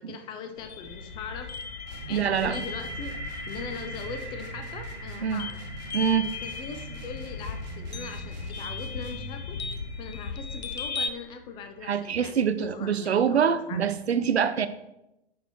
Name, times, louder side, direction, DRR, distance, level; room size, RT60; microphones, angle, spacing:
voice 1, 0.0-1.5 2.1-3.2 3.5-5.6 6.2-9.6 10.0-14.0, left 5 dB, 15° left, 0.4 m, -40 dB
sound 1, 0.6-11.1, left 4 dB, 75° left, 0.7 m, -37 dB
sound 2, 0.8-12.7, left 1 dB, 45° left, 2.0 m, -44 dB
sound 3, 1.8-9.4, right 3 dB, 40° right, 1.1 m, -43 dB
voice 2, 2.1-2.7 5.2-5.4 5.9-6.3 11.9-14.7, right 7 dB, 75° right, 0.6 m, -25 dB
9.3 x 4.0 x 3.0 m
figure-of-eight pair, 105°, 32 cm